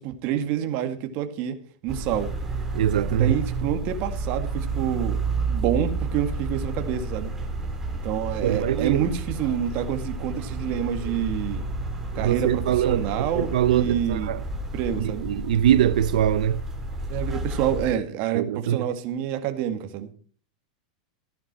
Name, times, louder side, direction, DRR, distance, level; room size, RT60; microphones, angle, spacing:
voice 1, 0.0-1.6 1.8-2.3 3.1-5.2 5.5-7.3 8.0-11.6 12.1-14.3 14.7-15.3 17.1-20.1, right 10 dB, 45° right, 2.1 m, -27 dB
sound 1, 1.9-17.9, right 3 dB, 10° right, 3.0 m, -31 dB
voice 2, 2.7-3.3 8.4-9.0 12.1-14.4 15.0-16.6 18.3-18.9, right 11 dB, 85° right, 0.6 m, -23 dB
15.0 x 11.0 x 4.4 m
supercardioid pair, 150°, 4 cm